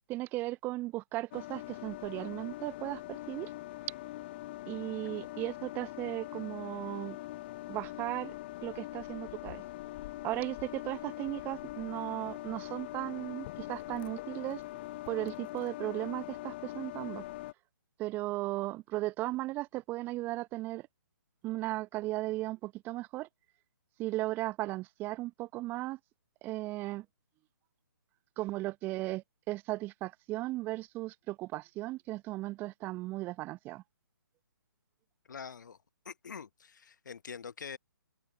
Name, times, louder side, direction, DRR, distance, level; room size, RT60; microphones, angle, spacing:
voice 1, 0.1-3.5 4.7-7.2 7.7-8.3 8.6-9.6 10.2-14.6 15.1-17.2 18.0-20.8 21.4-23.3 24.0-26.0 26.4-27.0 28.4-33.8, right 18 dB, 15° right, 1.0 m, -36 dB
sound 1, 1.3-17.5, left 17 dB, 30° left, 1.0 m, -43 dB
voice 2, 35.3-35.8 36.0-37.8, left 6 dB, 55° left, 1.4 m, -45 dB
open air
figure-of-eight pair, 135°, 12 cm